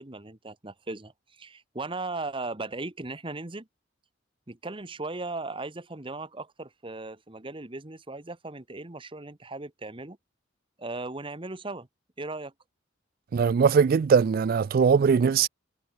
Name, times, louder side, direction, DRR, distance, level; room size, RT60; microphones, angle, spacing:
voice 1, 0.0-3.7 4.5-10.2 10.8-11.9 12.2-12.5, right 2 dB, 25° right, 1.3 m, -37 dB
voice 2, 13.3-15.5, right 6 dB, 45° right, 0.3 m, -21 dB
head